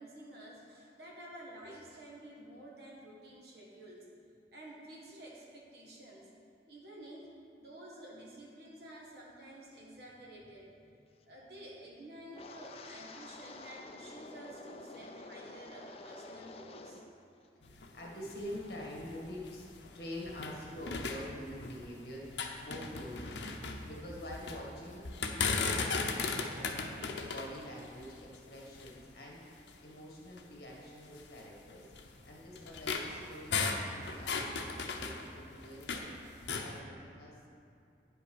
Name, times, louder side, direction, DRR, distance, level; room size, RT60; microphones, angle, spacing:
voice 1, 0.0-4.1 4.5-6.3 6.7-10.9 11.3-17.0, right 1 dB, 60° right, -3 dB, 1.8 m, -51 dB
Wind, 12.3-17.2 17.4-17.9 18.3-18.6, left 3 dB, 35° left, 0.4 m, -49 dB
sound 1, 17.6-20.6 20.9-21.9 22.2-24.6 25.0-29.1 29.7-29.8 30.3-30.4 31.2-36.1 36.4-36.7, left 4 dB, 80° left, 0.8 m, -37 dB
voice 2, 17.6-19.7 19.9-36.1 36.6-37.4, left 1 dB, 55° left, -3 dB, 1.8 m, -46 dB
9.4 x 5.6 x 6.2 m, 2.5 s
head